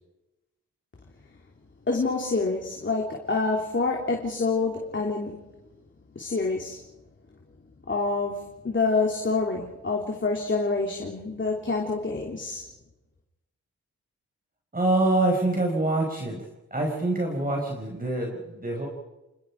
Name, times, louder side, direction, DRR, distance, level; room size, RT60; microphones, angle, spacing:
voice 1, 1.9-5.4 6.1-6.8 7.9-8.3 8.6-12.6, left 3 dB, 40° left, 0 dB, 3.4 m, -27 dB
voice 2, 14.7-16.4 16.7-18.9, right 2 dB, 30° right, 0 dB, 5.2 m, -25 dB
28.0 x 20.5 x 4.9 m, 1.0 s
cardioid pair, 55°, 29 cm